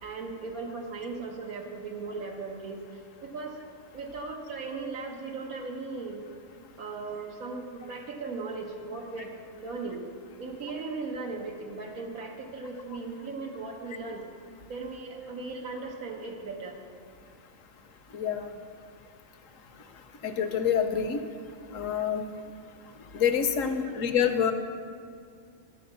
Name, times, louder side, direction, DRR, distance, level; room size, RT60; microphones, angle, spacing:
voice 1, 0.0-3.6 3.9-6.2 6.8-10.0 10.4-14.2 14.7-16.8 23.6-24.1 24.4-24.5, right 3 dB, 90° right, 0 dB, 1.6 m, -38 dB
voice 2, 18.1-18.5 20.2-21.2 21.7-22.2 23.1-24.5, left 8 dB, 70° left, 7 dB, 1.1 m, -26 dB
11.5 x 7.0 x 5.5 m, 2.3 s
omnidirectional pair, 1.4 m